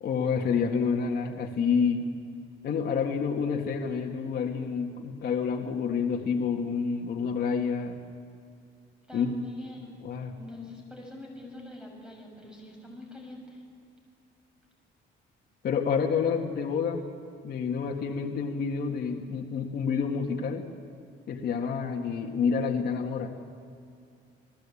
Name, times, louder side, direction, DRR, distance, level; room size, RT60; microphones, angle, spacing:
voice 1, 0.0-2.1 2.6-8.0 9.1-9.3 10.0-10.3 15.6-17.0 17.4-20.7 21.3-23.3, left 6 dB, 50° left, 1 dB, 1.9 m, -28 dB
voice 2, 9.1-10.0 10.4-13.6, left 2 dB, 5° right, 0 dB, 6.7 m, -44 dB
29.5 x 19.5 x 8.6 m, 2.4 s
cardioid pair, 155°, 21 cm